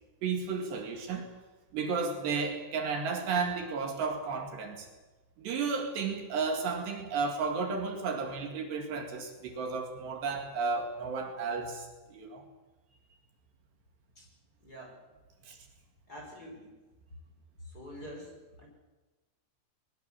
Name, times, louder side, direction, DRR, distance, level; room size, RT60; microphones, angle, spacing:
voice 1, 0.2-1.4 1.7-4.9 5.4-12.4 15.5-15.6, right 4 dB, 65° right, 3 dB, 4.1 m, -33 dB
voice 2, 14.6-15.0 16.1-16.8 17.6-18.7, equal, 20° left, 0 dB, 5.4 m, -46 dB
22.5 x 21.5 x 7.3 m, 1.2 s
omnidirectional pair, 5.5 m